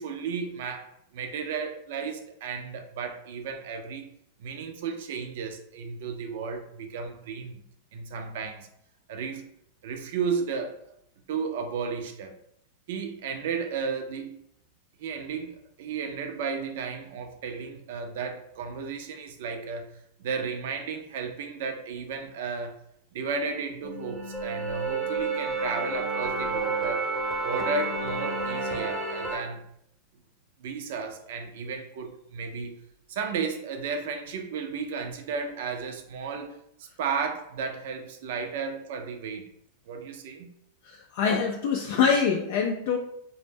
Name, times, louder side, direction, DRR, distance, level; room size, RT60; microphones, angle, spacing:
voice 1, 0.0-4.1 4.4-7.5 7.9-8.7 9.1-9.5 9.8-10.8 11.3-12.3 12.9-14.4 15.0-19.9 20.2-22.8 23.1-27.1 27.4-29.6 30.6-32.7 33.1-36.6 37.0-39.5 39.9-40.5, right 5 dB, 70° right, 5 dB, 0.4 m, -33 dB
sound 1, 23.8-29.4, right 3 dB, 15° right, 0.6 m, -30 dB
voice 2, 40.9-43.0, left 6 dB, 65° left, 1 dB, 0.3 m, -25 dB
2.1 x 2.0 x 3.3 m, 0.73 s
hypercardioid pair, 110°, 0 cm